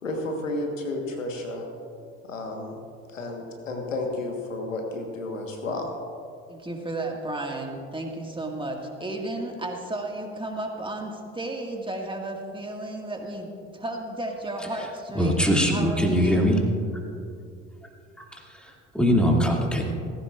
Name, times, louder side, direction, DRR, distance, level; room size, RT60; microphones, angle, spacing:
voice 1, 0.0-1.6 2.2-2.8 3.1-5.9, left 2 dB, 85° left, 2 dB, 1.5 m, -32 dB
voice 2, 6.5-13.5 13.7-16.6, right 2 dB, 15° right, 1 dB, 1.9 m, -33 dB
voice 3, 15.1-16.6 18.3-19.8, equal, ahead, -1 dB, 2.5 m, -22 dB
17.0 x 15.5 x 2.5 m, 2.4 s
figure-of-eight pair, 60°, 38 cm